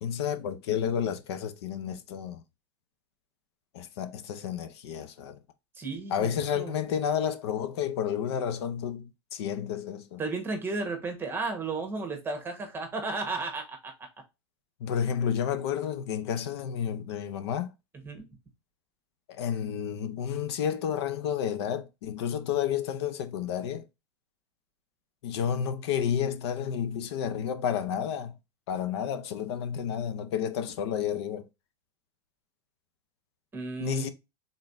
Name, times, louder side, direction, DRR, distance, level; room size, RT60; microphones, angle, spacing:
voice 1, 0.0-2.4 3.7-5.4 6.1-10.2 14.8-17.7 19.3-23.8 25.2-28.4 28.7-31.5 33.8-34.1, left 8 dB, 70° left, 0.8 m, -31 dB
voice 2, 5.8-6.8 10.2-13.9 18.0-18.3 33.5-34.0, right 3 dB, 15° right, 1.2 m, -33 dB
4.0 x 3.7 x 2.6 m
supercardioid pair, 125°, 14 cm